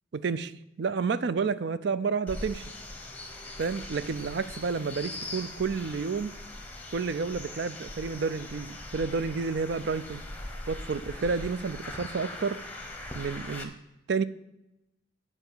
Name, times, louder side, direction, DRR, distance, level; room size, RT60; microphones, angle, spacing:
voice 1, 0.1-2.7 3.6-6.3 6.9-10.2 10.7-12.6 13.1-13.7 14.1-14.2, right 5 dB, 55° right, 15 dB, 0.4 m, -30 dB
sound 1, 2.3-13.6, left 2 dB, 10° left, 0.9 m, -41 dB
8.1 x 4.8 x 7.1 m, 0.91 s
head